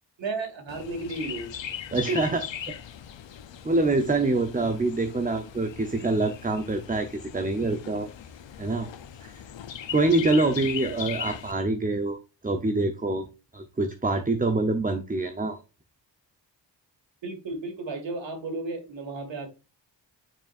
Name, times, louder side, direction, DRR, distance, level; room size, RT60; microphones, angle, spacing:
voice 1, 0.2-1.5 1.9-2.2 10.1-10.5 10.8-11.0 17.2-19.5, right 3 dB, 80° right, 2.2 m, -34 dB
Chirp tweet, 0.7-11.5, left 9 dB, 85° left, 0.9 m, -39 dB
voice 2, 1.9-2.4 3.6-8.1 8.6-8.9 9.2-9.4 9.9-12.2 12.4-13.3 13.5-15.6, right 2 dB, 20° right, 0.8 m, -25 dB
9.1 x 4.6 x 2.5 m
cardioid pair, 75°, 44 cm